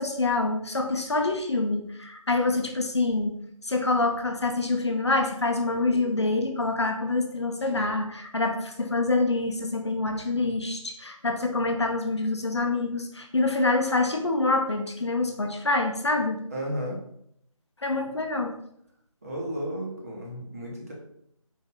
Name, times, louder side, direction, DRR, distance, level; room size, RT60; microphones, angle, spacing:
voice 1, 0.0-3.3 3.6-16.4 17.8-18.5, left 3 dB, 50° left, 4 dB, 0.6 m, -26 dB
voice 2, 16.5-17.0 19.2-20.9, equal, 25° right, -3 dB, 0.7 m, -33 dB
4.2 x 2.5 x 3.9 m, 0.71 s
figure-of-eight pair, 160°, 18 cm